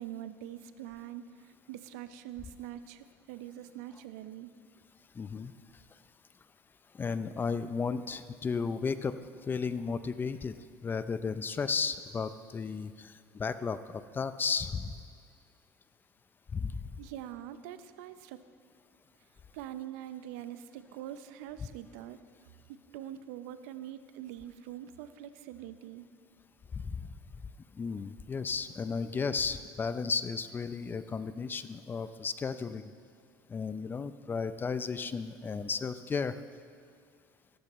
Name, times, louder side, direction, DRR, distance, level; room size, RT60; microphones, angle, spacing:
voice 1, 0.0-4.5 17.0-18.4 19.5-22.2 22.7-26.0, right 11 dB, 85° right, 12 dB, 0.6 m, -44 dB
voice 2, 5.2-5.5 6.9-9.1 9.5-10.5 10.8-14.9 16.5-16.7 27.0-27.1 27.7-32.8 33.5-36.3, left 5 dB, 25° left, 13 dB, 0.5 m, -34 dB
16.0 x 13.5 x 3.1 m, 2.1 s
supercardioid pair, 110°, 8 cm